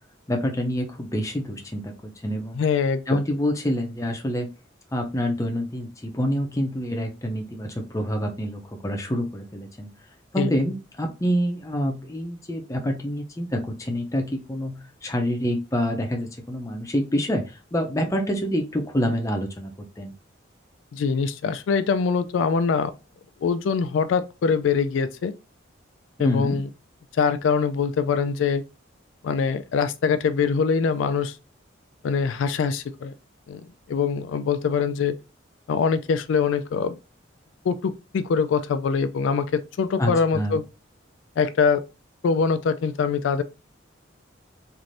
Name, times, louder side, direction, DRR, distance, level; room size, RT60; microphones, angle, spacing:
voice 1, 0.3-2.6 3.1-4.5 4.9-9.9 10.3-20.1 26.2-26.6 40.0-40.6, equal, 15° left, 0.5 m, -27 dB
voice 2, 2.6-3.2 10.4-10.5 20.9-22.9 23.4-25.3 26.2-26.7 27.2-28.6 29.2-31.4 32.0-33.1 33.5-33.6 33.9-35.1 35.7-37.0 37.7-40.6 41.4-41.8 42.2-43.4, left 5 dB, 85° left, 0.3 m, -23 dB
3.2 x 2.6 x 2.5 m
head